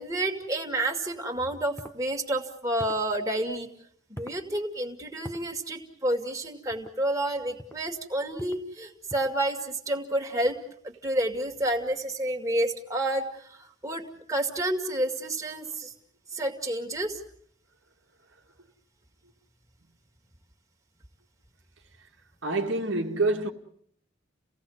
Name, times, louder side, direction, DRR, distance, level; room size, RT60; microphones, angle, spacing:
voice 1, 0.0-3.7 4.1-10.6 10.8-14.0 14.3-15.9 16.3-17.2, right 1 dB, 15° right, 2.2 m, -29 dB
sound 1, 1.8-2.0 2.8-3.1 4.2-4.4 5.2-5.5 6.7-7.0 7.6-7.8 8.4-8.7 9.1-9.4, equal, 10° left, 1.1 m, -43 dB
voice 2, 22.4-23.5, right 2 dB, 80° right, 1.9 m, -26 dB
29.5 x 17.0 x 7.9 m
head